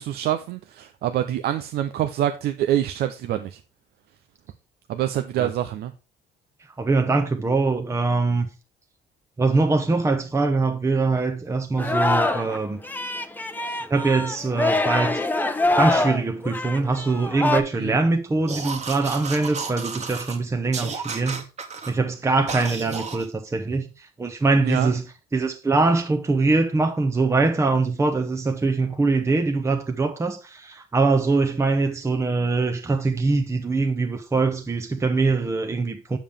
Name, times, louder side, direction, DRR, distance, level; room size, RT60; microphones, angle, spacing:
voice 1, 0.0-3.6 4.9-5.9 13.7-13.8 17.8-18.0 24.6-24.9, right 12 dB, 70° right, 0.7 m, -26 dB
voice 2, 6.8-8.5 9.4-12.8 13.9-15.2 15.8-21.5 21.9-25.1 25.3-36.2, right 3 dB, 15° right, 1.0 m, -23 dB
Singing, 11.8-12.6 12.8-17.6, left 2 dB, 10° left, 0.9 m, -24 dB
sound 1, 18.5-20.4 20.7-21.9 22.5-23.3, right 5 dB, 40° right, 1.6 m, -32 dB
7.2 x 7.1 x 3.5 m
cardioid pair, 110°, 17 cm